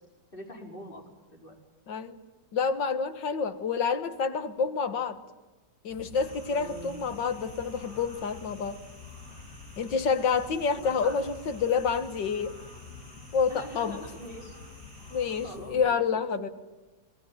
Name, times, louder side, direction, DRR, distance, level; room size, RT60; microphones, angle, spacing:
voice 1, 0.3-1.5 6.5-7.0 10.8-11.2 13.5-14.6 15.4-16.0, equal, 30° left, 1 dB, 4.9 m, -43 dB
voice 2, 2.5-5.2 5.8-8.8 9.8-12.5 13.3-14.0 15.1-16.5, left 5 dB, 85° left, 10 dB, 2.2 m, -28 dB
sound 1, 5.9-16.0, left 5 dB, 50° left, 2.0 m, -48 dB
sound 2, 6.1-15.6, right 1 dB, 65° right, 8.1 m, -52 dB
27.0 x 19.0 x 9.2 m, 1.2 s
omnidirectional pair, 1.9 m